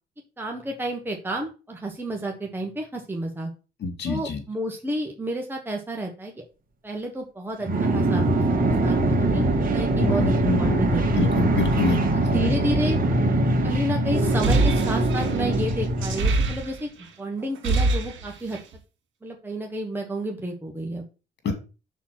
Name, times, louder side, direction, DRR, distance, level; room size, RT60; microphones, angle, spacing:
voice 1, 0.4-3.5 4.0-6.3 6.8-8.2 8.8-9.4 9.7-11.3 12.1-13.0 13.6-16.9 17.2-18.6 19.2-21.0, right 1 dB, 10° right, 1 dB, 1.3 m, -31 dB
voice 2, 3.8-4.4 10.0-12.0 12.4-12.5 21.4-21.5, left 4 dB, 60° left, 6 dB, 2.3 m, -26 dB
Cyborg Swarm, 7.6-16.6, right 2 dB, 45° right, 2.0 m, -22 dB
sound 1, 14.2-17.1 17.4-18.8, right 3 dB, 75° right, 2.3 m, -25 dB
5.8 x 4.2 x 5.9 m, 0.33 s
cardioid pair, 90°, 20 cm